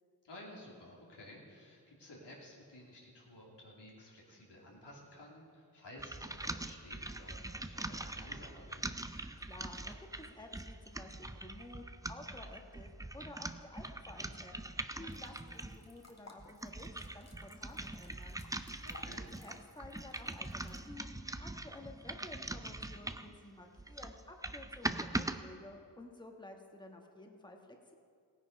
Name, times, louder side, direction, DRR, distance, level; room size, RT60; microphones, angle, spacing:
voice 1, 0.2-8.8 18.8-19.2, left 1 dB, 80° left, -3 dB, 2.8 m, -54 dB
sound 1, 6.0-15.8 16.4-23.4 23.8-25.4, right 2 dB, 10° right, 0.5 m, -42 dB
voice 2, 9.1-18.4 19.2-27.9, left 2 dB, 10° left, 2 dB, 1.4 m, -53 dB
sound 2, 15.1-20.8, left 2 dB, 40° left, 1.7 m, -59 dB
16.0 x 9.3 x 5.4 m, 2.2 s
cardioid pair, 55°, 41 cm